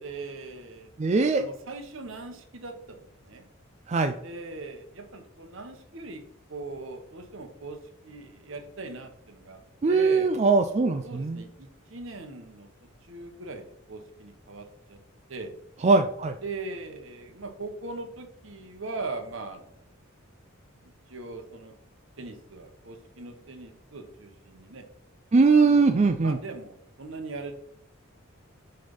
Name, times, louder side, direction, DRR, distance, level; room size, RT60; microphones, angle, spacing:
voice 1, 0.0-0.9 1.4-3.4 4.2-6.2 6.5-9.6 9.9-10.3 11.0-12.7 13.0-15.0 15.3-15.5 16.4-19.8 20.8-21.8 22.2-24.8 25.5-27.6, right 3 dB, 65° right, 6 dB, 1.2 m, -40 dB
voice 2, 1.0-1.5 3.9-4.2 9.8-11.4 15.8-16.4 25.3-26.4, right 4 dB, 35° right, 7 dB, 0.4 m, -21 dB
7.6 x 3.4 x 5.4 m, 0.66 s
head